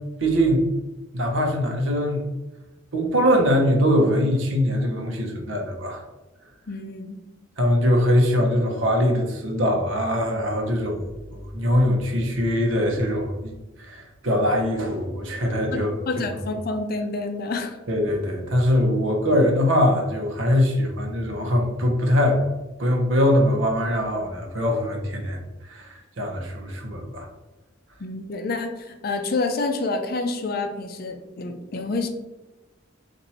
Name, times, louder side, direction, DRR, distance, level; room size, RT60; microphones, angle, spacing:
voice 1, 0.2-0.8 1.1-2.2 2.9-6.0 7.6-13.5 13.8-15.9 17.9-22.4 22.8-25.4 25.7-27.3, equal, 70° right, 1 dB, 0.9 m, -22 dB
voice 2, 6.7-7.2 15.7-17.8 28.0-32.1, left 3 dB, 50° left, 5 dB, 0.5 m, -28 dB
4.4 x 2.6 x 4.1 m, 1.1 s
head